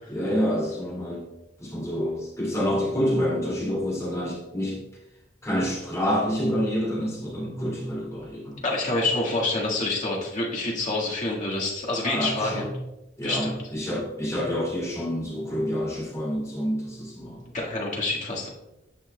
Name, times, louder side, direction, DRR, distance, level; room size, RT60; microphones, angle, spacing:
voice 1, 0.1-1.3 1.6-4.8 5.4-8.6 12.0-12.7 13.2-17.4, equal, 15° left, -5 dB, 2.4 m, -28 dB
voice 2, 8.6-12.7 13.2-13.6 17.5-18.5, left 2 dB, 45° left, -4 dB, 1.7 m, -27 dB
9.7 x 5.7 x 2.2 m, 0.96 s
head